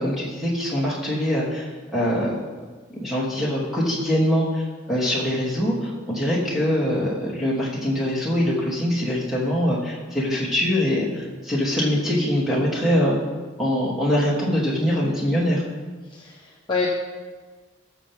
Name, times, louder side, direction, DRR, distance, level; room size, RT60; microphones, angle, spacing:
voice 1, 0.0-2.4 3.0-13.2 13.6-15.6, equal, ahead, -6 dB, 3.0 m, -23 dB
voice 2, 16.1-16.9, left 4 dB, 25° left, -4 dB, 1.2 m, -27 dB
20.0 x 6.9 x 3.7 m, 1.4 s
head